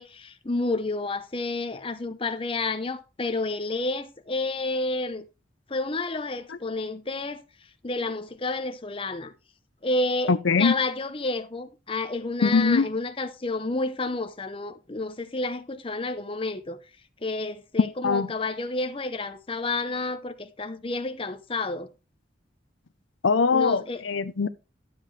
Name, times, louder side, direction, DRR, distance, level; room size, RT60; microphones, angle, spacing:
voice 1, 0.0-5.3 5.7-7.4 7.8-9.3 9.8-10.3 10.6-16.8 17.2-21.9 23.5-24.0, left 2 dB, 30° left, 0.8 m, -30 dB
voice 2, 10.3-10.7 12.4-12.9 18.0-18.3 23.2-24.5, left 4 dB, 75° left, 0.6 m, -22 dB
12.0 x 7.5 x 3.2 m
head